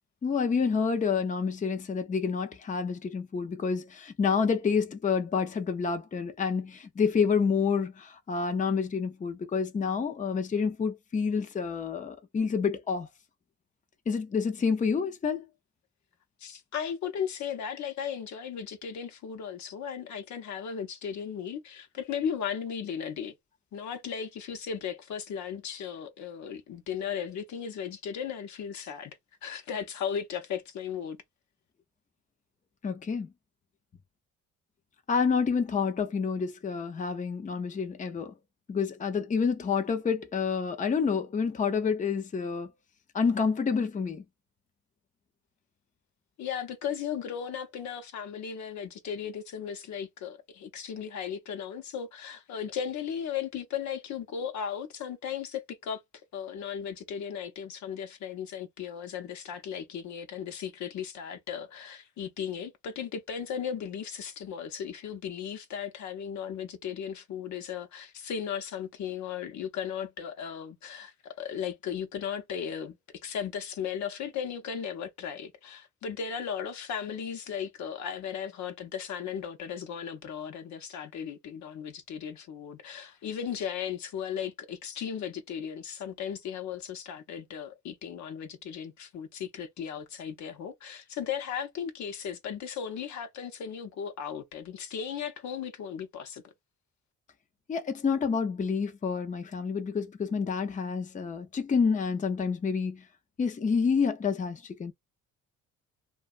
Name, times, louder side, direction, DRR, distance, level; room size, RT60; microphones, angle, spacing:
voice 1, 0.2-13.1 14.1-15.4 32.8-33.3 35.1-38.3 38.7-42.7 43.1-44.2 97.7-103.0 103.4-104.9, left 5 dB, 25° left, 0.6 m, -28 dB
voice 2, 16.4-23.3 23.7-31.2 46.4-56.0 56.3-73.0 73.2-96.5, left 8 dB, 70° left, 0.7 m, -36 dB
2.6 x 2.3 x 2.4 m
cardioid pair, 90°, 30 cm